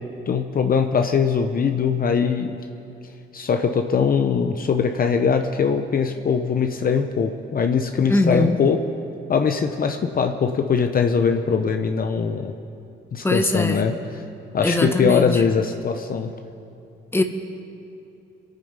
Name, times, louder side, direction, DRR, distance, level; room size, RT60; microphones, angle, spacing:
voice 1, 0.3-2.6 3.3-8.8 9.3-12.5 13.1-13.9 14.5-16.3, left 6 dB, 45° left, 5 dB, 0.9 m, -21 dB
voice 2, 8.1-8.6 13.2-13.8 14.6-15.4 17.1-17.2, left 2 dB, 10° left, 5 dB, 1.4 m, -21 dB
26.0 x 9.2 x 5.5 m, 2.6 s
cardioid pair, 90°, 20 cm